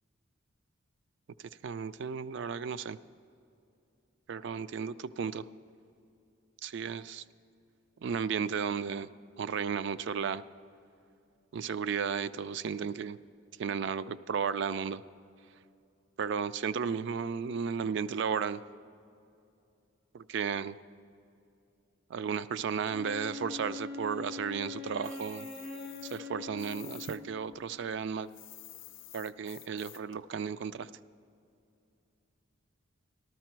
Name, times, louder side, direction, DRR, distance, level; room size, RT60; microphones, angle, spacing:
voice 1, 1.6-3.0 4.3-5.5 6.6-7.2 8.0-9.1 9.4-10.4 11.5-13.2 13.6-15.0 16.2-18.6 20.1-20.8 22.1-25.5 26.0-28.3 29.1-30.9, right 6 dB, 60° right, 15 dB, 0.3 m, -34 dB
Wind instrument woodwind instrument, 22.9-27.7, left 4 dB, 80° right, 2.3 m, -43 dB
sound 1, 25.0-27.2 27.5-30.2, left 16 dB, 65° left, 0.5 m, -51 dB
13.5 x 13.0 x 4.5 m, 2.6 s
head